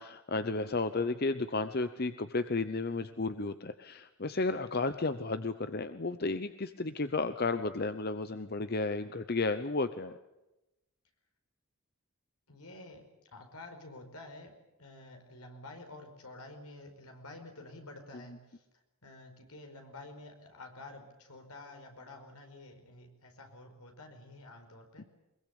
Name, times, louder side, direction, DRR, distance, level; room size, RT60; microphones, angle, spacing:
voice 1, 0.0-10.2, left 3 dB, 45° left, 11 dB, 0.8 m, -33 dB
voice 2, 12.5-14.5 14.8-18.6 19.0-25.1, left 2 dB, 80° left, 4 dB, 5.1 m, -50 dB
23.0 x 22.0 x 8.5 m, 0.97 s
head